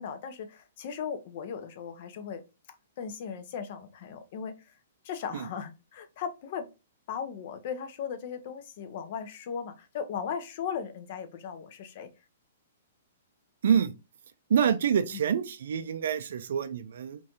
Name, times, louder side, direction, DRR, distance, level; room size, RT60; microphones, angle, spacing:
voice 1, 0.0-2.4 3.0-4.7 5.0-6.7 7.1-12.1 15.1-15.2, left 7 dB, 50° left, 0.5 m, -37 dB
voice 2, 14.5-17.2, right 8 dB, 70° right, 0.3 m, -26 dB
2.5 x 2.2 x 2.7 m
hypercardioid pair, 135°, 0 cm